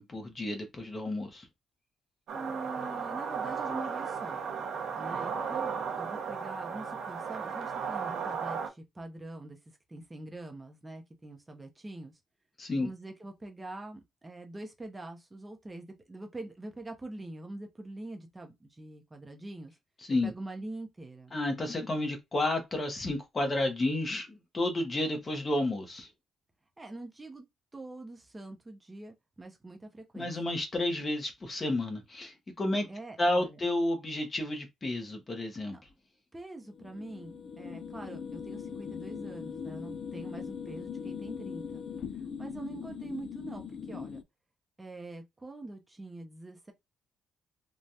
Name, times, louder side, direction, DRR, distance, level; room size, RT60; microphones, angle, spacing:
voice 1, 0.0-1.5 12.6-12.9 20.0-20.3 21.3-26.1 30.2-32.9 33.2-35.8, left 1 dB, 30° left, 1.0 m, -31 dB
voice 2, 2.3-4.4 4.9-12.2 12.7-19.8 20.2-21.3 26.8-27.4 27.7-30.3 32.9-33.6 35.7-35.8 36.3-41.8 42.1-44.2 44.8-46.7, right 2 dB, 15° right, 0.6 m, -44 dB
sound 1, 2.3-8.7, right 6 dB, 70° right, 0.7 m, -35 dB
sound 2, 36.6-44.2, left 6 dB, 60° left, 0.4 m, -40 dB
3.2 x 2.3 x 2.7 m
cardioid pair, 90°, 0 cm